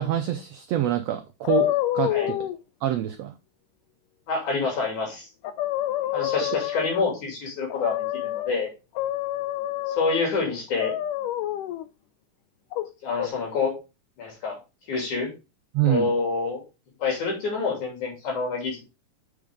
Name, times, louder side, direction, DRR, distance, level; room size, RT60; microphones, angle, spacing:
voice 1, 0.0-2.5 2.8-3.3 15.7-16.1, right 12 dB, 85° right, 8 dB, 1.4 m, -26 dB
sound 1, 1.4-2.6 5.0-5.1 5.4-7.2 7.7-8.5 9.0-10.3 10.8-11.9 12.7-13.3, left 13 dB, 85° left, 2.2 m, -27 dB
voice 2, 4.3-5.3 6.1-8.7 9.9-10.9 13.0-13.7 14.2-14.6 14.9-15.3 15.8-16.6 17.0-18.8, left 4 dB, 65° left, 0 dB, 4.1 m, -27 dB
7.8 x 5.1 x 3.6 m, 0.28 s
omnidirectional pair, 3.7 m